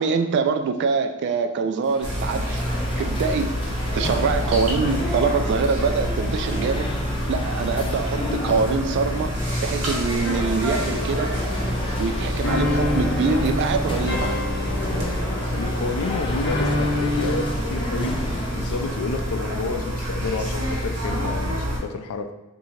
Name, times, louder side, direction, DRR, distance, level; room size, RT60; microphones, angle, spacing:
voice 1, 0.0-2.6 3.0-6.9 7.3-11.4 12.0-14.4, right 5 dB, 55° right, 8 dB, 0.3 m, -24 dB
sound 1, 1.8-19.1, left 1 dB, 25° left, 0.4 m, -33 dB
sound 2, 2.0-21.8, equal, 90° right, 1.2 m, -27 dB
sound 3, 10.4-17.5, left 2 dB, 50° left, 0.8 m, -28 dB
voice 2, 15.5-18.2 18.5-22.3, left 3 dB, 85° left, 7 dB, 0.4 m, -30 dB
2.7 x 2.7 x 4.3 m, 1.0 s
head